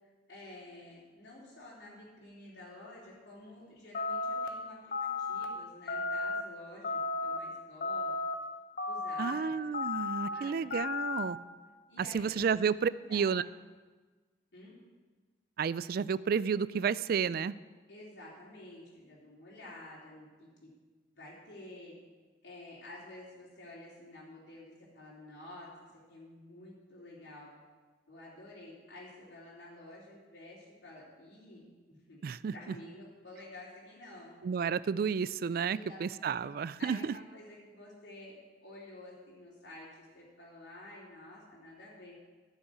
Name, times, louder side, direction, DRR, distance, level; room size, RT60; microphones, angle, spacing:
voice 1, 0.3-8.1 8.9-9.5 10.3-10.6 11.9-12.6 13.0-13.3 14.5-14.7 17.9-20.5 21.1-21.9 22.4-25.7 26.1-27.5 28.1-32.2 32.5-34.4 35.7-36.4 36.8-38.3 38.6-42.2, left 1 dB, 90° left, -6 dB, 3.5 m, -50 dB
sound 1, 3.9-4.5 4.9-5.4 5.9-6.4 6.8-7.4 7.8-8.3 8.8-9.3 9.7-10.3 10.7-11.2, left 4 dB, 55° left, 1.0 m, -34 dB
voice 2, 9.2-11.4 12.0-13.4 15.6-17.6 32.2-32.5 34.4-37.1, right 6 dB, 55° right, 17 dB, 0.3 m, -31 dB
11.5 x 6.4 x 8.3 m, 1.3 s
head